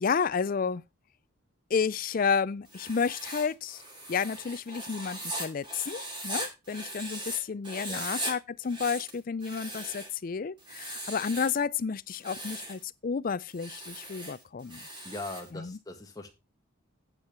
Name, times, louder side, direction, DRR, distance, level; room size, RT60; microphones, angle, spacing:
voice 1, 0.0-0.8 1.7-3.8 4.1-14.8 15.5-15.8, left 6 dB, 40° left, 0.4 m, -31 dB
Writing, 2.7-7.4 7.6-8.3 8.6-10.2 10.6-11.6 12.1-12.8 13.5-15.5, right 1 dB, 20° right, 2.5 m, -39 dB
voice 2, 15.0-16.3, left 2 dB, 15° left, 1.6 m, -40 dB
8.9 x 7.2 x 4.4 m
head